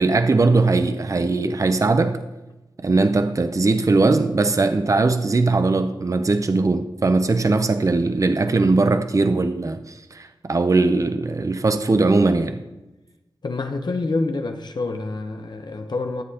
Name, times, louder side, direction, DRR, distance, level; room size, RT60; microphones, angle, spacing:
voice 1, 0.0-2.2 2.8-12.6, right 3 dB, 40° right, 0.6 m, -20 dB
voice 2, 13.4-16.2, left 3 dB, 60° left, 0.9 m, -27 dB
13.5 x 7.5 x 2.9 m
cardioid pair, 45°, 9 cm